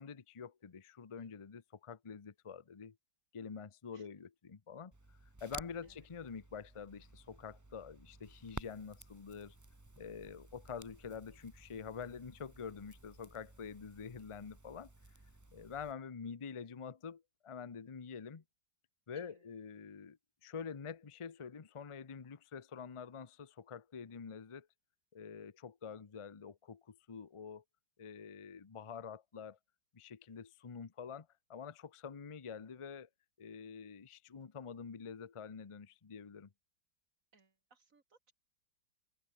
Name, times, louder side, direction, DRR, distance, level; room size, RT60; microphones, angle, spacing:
voice 1, 0.0-3.0 3.3-4.9 5.4-9.6 10.0-14.9 15.5-18.4 19.1-24.7 25.1-27.6 28.0-29.6 29.9-33.1 33.4-36.5, left 6 dB, 45° left, 0.4 m, -47 dB
Crackle, 4.9-15.9, right 2 dB, 10° right, 1.1 m, -54 dB
voice 2, 19.1-19.5 37.3-38.3, right 4 dB, 45° right, 3.0 m, -68 dB
omnidirectional pair, 2.0 m